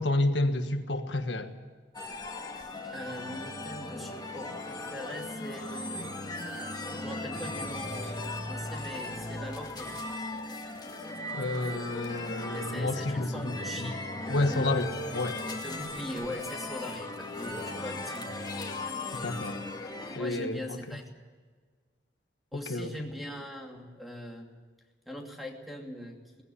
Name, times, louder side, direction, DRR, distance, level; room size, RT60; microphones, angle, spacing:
voice 1, 0.0-1.5 11.3-13.5 13.8-13.9 14.3-14.9 15.1-15.4 19.1-19.6 20.1-21.0 22.5-22.9, left 2 dB, 85° left, 7 dB, 1.5 m, -30 dB
sound 1, 1.9-20.2, left 2 dB, 25° left, 2.2 m, -37 dB
voice 2, 2.8-6.1 6.9-9.9 12.5-14.7 15.6-18.4 20.2-21.0 22.5-24.5 25.1-26.4, left 1 dB, ahead, 1 dB, 2.7 m, -41 dB
18.5 x 15.5 x 9.9 m, 1.5 s
head